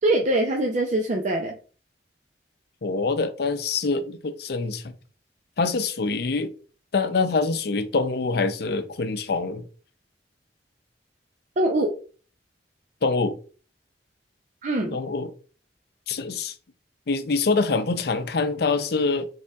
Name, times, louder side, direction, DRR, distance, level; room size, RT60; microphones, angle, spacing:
voice 1, 0.0-1.5 11.6-11.9 14.6-15.0, right 1 dB, 45° right, 0.5 m, -23 dB
voice 2, 2.8-4.8 5.6-6.5 6.9-9.7 13.0-13.4 14.9-15.3 16.1-16.5 17.1-19.3, left 4 dB, 65° left, 0.5 m, -25 dB
5.4 x 3.5 x 2.3 m
head